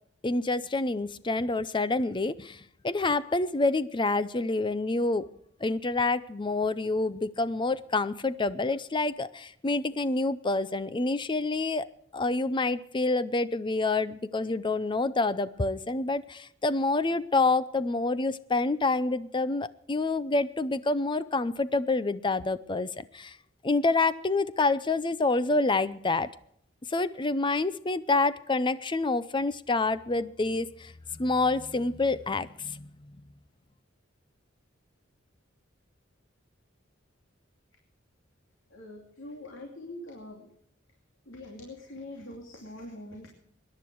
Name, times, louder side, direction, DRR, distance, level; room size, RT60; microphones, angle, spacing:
voice 1, 0.2-5.3 5.6-11.9 12.1-23.4 23.6-26.3 26.9-32.9, left 3 dB, 25° left, 15 dB, 0.6 m, -27 dB
voice 2, 38.7-40.5 41.3-43.3, left 1 dB, 80° left, 1 dB, 2.6 m, -43 dB
21.5 x 10.5 x 4.7 m, 0.71 s
head